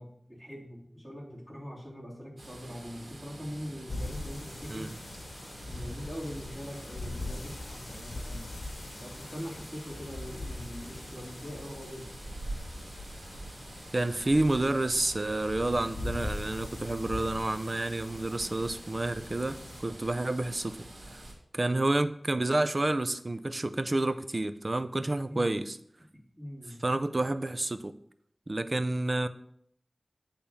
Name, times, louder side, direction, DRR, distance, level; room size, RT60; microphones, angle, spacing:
voice 1, 0.0-5.0 5.7-8.5 9.0-12.2 25.3-25.6 26.1-26.8, equal, 5° right, -6 dB, 3.4 m, -42 dB
sound 1, 2.4-21.3, right 1 dB, 90° right, 2.1 m, -47 dB
sound 2, 3.9-19.8, left 2 dB, 70° left, 1.0 m, -42 dB
voice 2, 13.9-20.8 21.5-25.8 26.8-27.9 28.5-29.3, right 2 dB, 45° right, 12 dB, 0.5 m, -29 dB
8.7 x 3.5 x 5.6 m, 0.69 s
wide cardioid pair, 55°, 0 cm